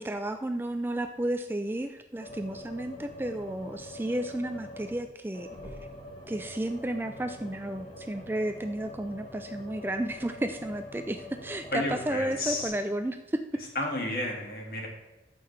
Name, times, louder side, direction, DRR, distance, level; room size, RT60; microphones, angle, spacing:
voice 1, 0.0-5.5 6.3-13.4, right 1 dB, 10° right, 7 dB, 0.3 m, -32 dB
sound 1, 2.2-5.1 5.3-12.7, left 1 dB, 30° left, 1.6 m, -44 dB
voice 2, 11.7-12.7 13.8-14.9, left 1 dB, 55° left, 0 dB, 2.0 m, -31 dB
13.5 x 5.7 x 3.3 m, 1.0 s
head